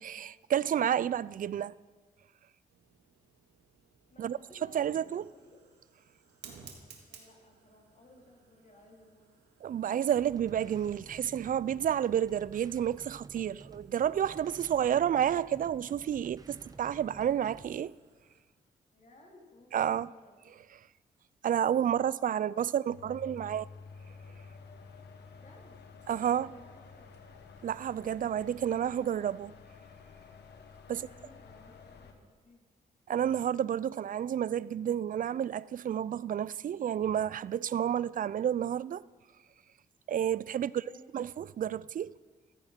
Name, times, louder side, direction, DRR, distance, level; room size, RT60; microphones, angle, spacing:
voice 1, 0.0-1.7 4.2-4.4 4.7-5.2 9.6-17.9 19.7-20.1 21.4-23.7 26.1-26.5 27.6-29.5 30.9-31.0 33.1-39.0 40.1-40.7 41.1-42.1, right 9 dB, 50° right, 0.4 m, -30 dB
Fire, 2.7-18.4, right 6 dB, 80° right, 2.0 m, -59 dB
voice 2, 4.1-5.7 7.1-9.3 18.9-20.3 22.8-23.7 25.3-26.0 26.3-27.1 30.9-32.6 40.7-41.0, left 2 dB, 45° left, 3.9 m, -58 dB
sound 1, 10.1-17.8, right 3 dB, 20° right, 1.1 m, -52 dB
sound 2, 22.9-32.1, left 5 dB, 70° left, 1.5 m, -51 dB
15.0 x 13.5 x 4.5 m
supercardioid pair, 50°, 18 cm